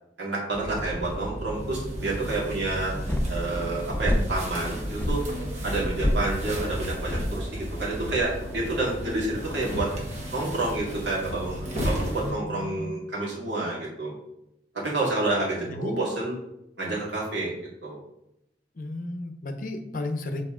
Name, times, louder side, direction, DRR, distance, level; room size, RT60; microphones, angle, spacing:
voice 1, 0.2-2.9 3.3-5.2 5.6-9.9 10.3-14.1 14.7-16.4 16.8-17.5 17.8-18.0, right 2 dB, 75° right, -5 dB, 2.2 m, -29 dB
sound 1, 0.5-12.3, equal, 40° right, 1.5 m, -34 dB
sound 2, 2.9-8.2, left 1 dB, 10° left, 0.5 m, -29 dB
voice 2, 12.1-13.0 15.7-16.0 18.7-20.4, left 2 dB, 50° left, 6 dB, 0.7 m, -34 dB
7.1 x 4.1 x 3.7 m, 0.84 s
head